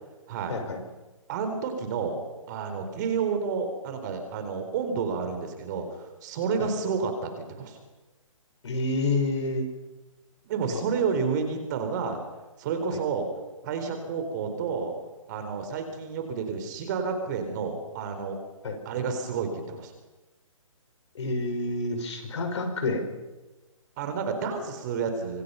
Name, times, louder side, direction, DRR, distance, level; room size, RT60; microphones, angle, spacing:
voice 1, 0.3-0.6 1.3-2.2 2.5-7.8 10.5-12.2 12.6-13.3 13.6-14.9 15.3-18.4 18.8-19.9 24.0-25.4, right 5 dB, 35° right, 6 dB, 4.1 m, -30 dB
voice 2, 8.6-9.7 10.7-10.8 18.6-18.7 21.1-23.0, left 2 dB, 55° left, 5 dB, 5.7 m, -28 dB
26.0 x 23.0 x 5.7 m, 1.1 s
hypercardioid pair, 150°, 18 cm